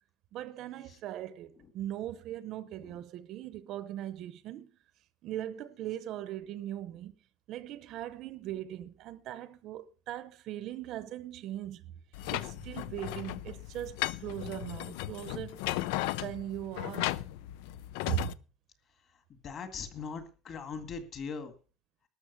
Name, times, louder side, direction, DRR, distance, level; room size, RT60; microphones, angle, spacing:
voice 1, 0.3-4.7 5.2-7.1 7.5-11.9 12.3-15.6 16.2-17.2 18.0-18.3, right 12 dB, 40° right, 0.7 m, -39 dB
sound 1, 12.1-18.3, left 16 dB, 85° left, 0.6 m, -36 dB
voice 2, 19.3-21.5, left 5 dB, 30° left, 2.0 m, -40 dB
12.5 x 6.6 x 8.1 m
cardioid pair, 180°, 0 cm